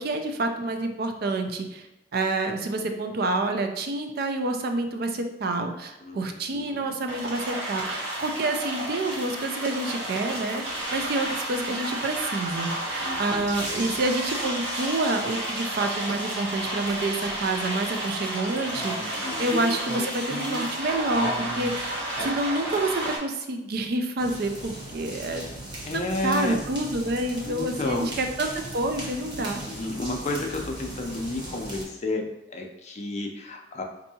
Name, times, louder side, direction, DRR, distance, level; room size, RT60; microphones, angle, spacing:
voice 1, 0.0-1.9 2.1-10.6 10.9-25.4 25.9-29.6, right 2 dB, 55° right, 5 dB, 0.4 m, -28 dB
voice 2, 6.5-6.8 13.0-13.7 19.1-19.5 25.8-26.6 27.4-28.1 29.6-33.8, left 2 dB, 40° left, 2 dB, 0.5 m, -31 dB
sound 1, 7.1-23.2, right 1 dB, 75° right, 1.1 m, -32 dB
sound 2, 17.2-17.3 18.7-20.8 21.1-22.5, equal, 5° left, 0.7 m, -34 dB
sound 3, 24.2-31.8, right 1 dB, 25° right, 0.9 m, -38 dB
4.5 x 2.7 x 2.7 m, 0.91 s
head